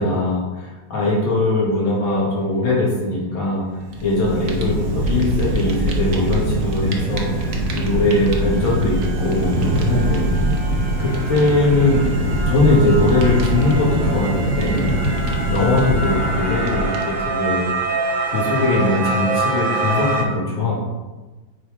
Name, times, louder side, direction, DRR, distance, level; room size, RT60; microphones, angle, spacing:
voice 1, 0.0-3.6 4.0-10.3 11.0-12.1 12.5-14.9 15.5-17.7 18.3-20.8, left 2 dB, 70° left, -5 dB, 2.2 m, -20 dB
Fire, 3.8-17.4, right 1 dB, 55° right, 0.9 m, -22 dB
sound 1, 5.7-5.8 6.1-20.2, right 2 dB, 30° right, 0.9 m, -27 dB
7.6 x 3.5 x 4.8 m, 1.2 s
omnidirectional pair, 2.3 m